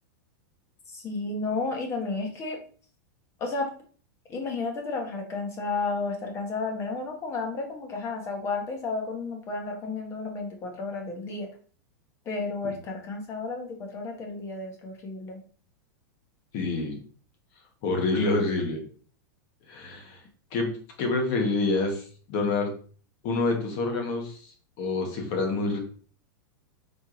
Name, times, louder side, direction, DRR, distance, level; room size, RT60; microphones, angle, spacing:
voice 1, 0.9-2.6 3.4-3.7 4.3-11.5 12.2-15.4, left 3 dB, 25° left, 3 dB, 1.1 m, -32 dB
voice 2, 16.5-17.0 17.8-18.8 19.7-20.2 20.5-22.7 23.2-25.8, left 3 dB, 45° left, 3 dB, 1.4 m, -27 dB
4.5 x 3.6 x 3.0 m, 0.43 s
supercardioid pair, 150°, 11 cm